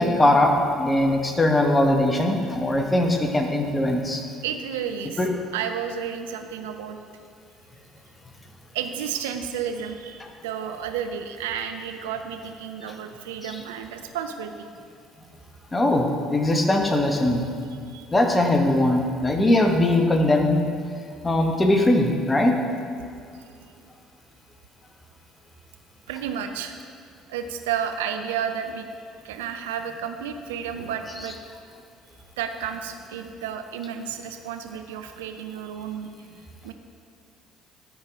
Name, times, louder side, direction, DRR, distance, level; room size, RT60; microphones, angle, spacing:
voice 1, 0.0-4.2 5.2-5.3 15.7-17.4 18.1-20.6 21.2-22.6, left 1 dB, 20° left, 3 dB, 1.2 m, -20 dB
voice 2, 4.4-5.2 5.5-7.0 8.7-14.5 17.9-18.1 23.3-23.7 26.1-26.8 27.3-28.9 29.2-31.4 32.4-36.1 36.6-36.7, right 8 dB, 80° right, 7 dB, 0.5 m, -32 dB
13.5 x 4.8 x 3.7 m, 2.4 s
hypercardioid pair, 55°, 0 cm